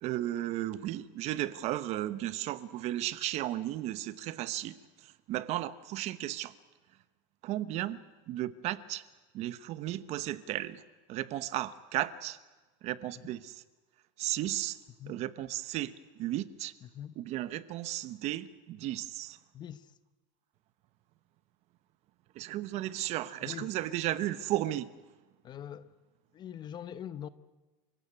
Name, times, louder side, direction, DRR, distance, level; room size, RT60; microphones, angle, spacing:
voice 1, 0.0-6.5 7.4-8.0 8.3-9.0 9.3-10.8 11.1-12.4 12.8-13.5 14.2-14.8 15.1-16.7 17.2-19.4 22.3-24.9, right 14 dB, 40° right, 1.0 m, -34 dB
voice 2, 16.8-17.2 19.5-19.9 23.4-23.7 25.4-25.9 26.3-27.3, left 10 dB, 25° left, 0.8 m, -43 dB
28.5 x 16.5 x 9.7 m
supercardioid pair, 155°, 17 cm